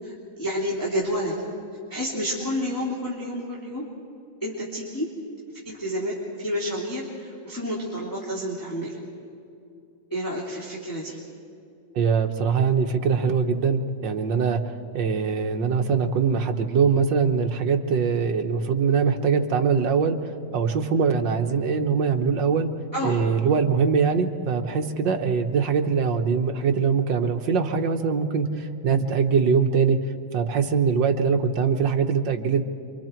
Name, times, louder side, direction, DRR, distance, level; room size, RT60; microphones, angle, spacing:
voice 1, 0.0-1.3 1.9-3.8 4.4-5.1 5.6-9.0 10.1-11.2 22.9-23.2, equal, 10° left, -6 dB, 2.7 m, -29 dB
voice 2, 11.9-22.7 23.0-30.0 30.3-32.6, right 5 dB, 65° right, 5 dB, 1.7 m, -22 dB
27.5 x 24.5 x 4.5 m, 2.6 s
omnidirectional pair, 2.3 m